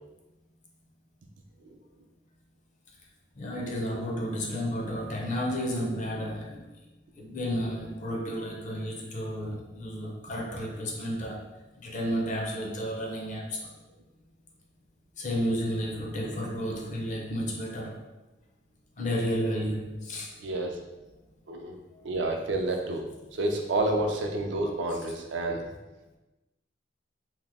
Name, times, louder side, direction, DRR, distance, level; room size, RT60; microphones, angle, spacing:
voice 1, 3.4-6.6 7.2-11.5 11.8-13.7 15.2-18.0 19.0-20.3 21.9-22.1, equal, 40° left, -1 dB, 0.5 m, -32 dB
voice 2, 20.4-20.8 21.5-21.8 22.0-25.6, right 2 dB, 70° right, 2 dB, 0.4 m, -29 dB
2.9 x 2.0 x 3.4 m, 1.1 s
head